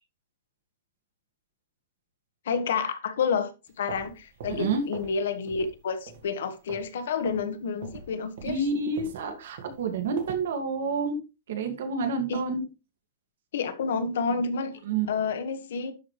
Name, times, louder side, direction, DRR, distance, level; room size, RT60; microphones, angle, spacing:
voice 1, 2.4-3.5 3.8-8.7 12.3-12.4 13.5-14.8 15.1-15.9, left 5 dB, 80° left, 1.3 m, -29 dB
sound 1, 3.7-5.2 5.5-5.8 6.1-6.9 7.2-7.5 7.8-10.5, right 5 dB, 55° right, 1.6 m, -43 dB
voice 2, 4.5-4.8 8.4-11.2 11.5-12.6 14.9-15.1, right 4 dB, 75° right, 2.1 m, -28 dB
11.5 x 4.6 x 3.2 m
supercardioid pair, 180°, 0 cm